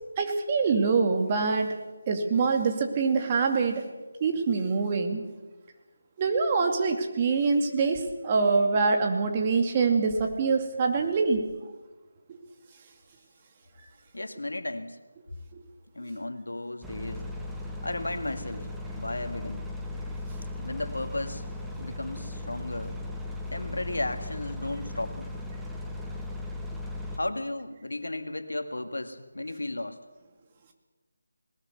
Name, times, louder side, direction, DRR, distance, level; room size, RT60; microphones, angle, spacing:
voice 1, 0.2-1.8 2.1-3.8 4.2-5.2 6.2-11.5 12.3-12.4, right 4 dB, 25° right, 3 dB, 2.6 m, -25 dB
voice 2, 14.1-15.0 15.9-17.3 17.8-18.7 19.0-19.6 20.6-21.4 21.8-23.0 23.5-25.3 27.1-30.0, left 2 dB, 80° left, 7 dB, 2.0 m, -34 dB
sound 1, 16.8-27.2, left 2 dB, 5° right, 1.5 m, -37 dB
21.0 x 20.0 x 7.0 m, 1.2 s
figure-of-eight pair, 160°, 0 cm